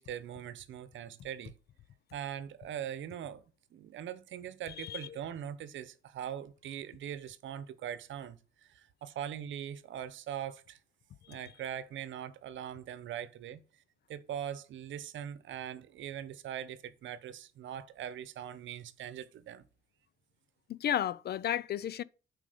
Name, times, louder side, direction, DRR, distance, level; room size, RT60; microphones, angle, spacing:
voice 1, 0.0-1.5 2.1-3.4 3.7-8.4 8.7-10.8 11.3-13.6 14.1-19.6, right 10 dB, 70° right, 0.9 m, -41 dB
voice 2, 4.8-5.1 11.3-11.4 20.7-22.0, left 10 dB, 55° left, 0.5 m, -33 dB
7.6 x 5.0 x 5.0 m
cardioid pair, 90°, 20 cm